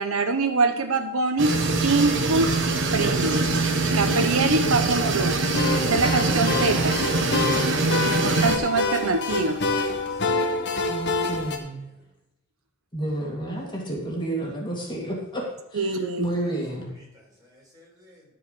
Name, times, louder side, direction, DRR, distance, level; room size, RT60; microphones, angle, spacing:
voice 1, 0.0-2.5 2.9-3.5 3.9-5.5 5.9-7.0 8.1-9.6 15.7-16.3, right 3 dB, 75° right, 0.9 m, -24 dB
sound 1, 1.4-8.6, right 3 dB, 60° right, 1.3 m, -23 dB
sound 2, 5.5-11.6, left 3 dB, 55° left, 1.6 m, -27 dB
voice 2, 9.6-11.2 17.4-18.2, left 1 dB, 15° right, 4.5 m, -54 dB
voice 3, 10.8-11.9 12.9-16.9, right 1 dB, 20° left, 2.1 m, -31 dB
13.5 x 4.9 x 6.7 m
head